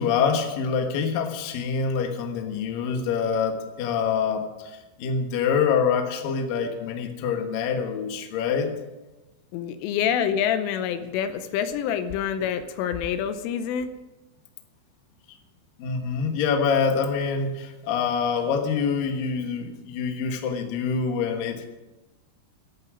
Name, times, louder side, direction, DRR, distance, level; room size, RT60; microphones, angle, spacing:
voice 1, 0.0-8.7 15.8-21.7, left 6 dB, 65° left, 4 dB, 2.4 m, -25 dB
voice 2, 9.5-13.9, left 8 dB, 85° left, 10 dB, 3.3 m, -26 dB
14.0 x 11.0 x 6.2 m, 1.1 s
omnidirectional pair, 5.8 m